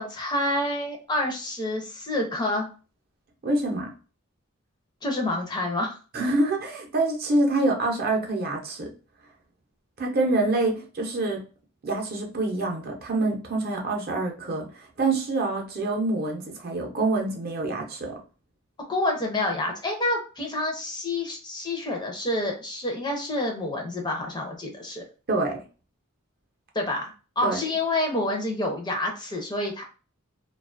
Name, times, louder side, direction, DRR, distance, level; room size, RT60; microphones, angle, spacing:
voice 1, 0.0-2.7 5.0-6.0 18.9-25.0 26.7-29.8, left 1 dB, 20° left, 1 dB, 0.5 m, -28 dB
voice 2, 3.4-3.9 6.1-8.9 10.0-11.4 11.8-18.2 25.3-25.6 27.4-27.6, right 2 dB, 45° right, 1 dB, 0.6 m, -26 dB
2.4 x 2.3 x 2.4 m, 0.35 s
head